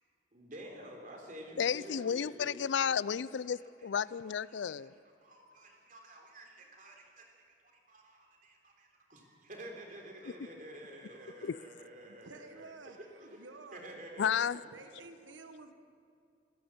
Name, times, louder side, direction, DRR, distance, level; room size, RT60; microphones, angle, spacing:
voice 1, 0.3-2.6 3.2-3.3 3.8-4.9 5.2-7.4 7.7-14.5 14.7-15.0, right 1 dB, 45° right, 2 dB, 3.5 m, -50 dB
voice 2, 1.6-4.9 11.4-11.6 14.2-14.6, left 7 dB, 75° left, 20 dB, 0.4 m, -32 dB
voice 3, 12.1-14.0 14.7-15.7, right 3 dB, 85° right, 7 dB, 1.3 m, -51 dB
27.0 x 14.5 x 7.3 m, 2.4 s
head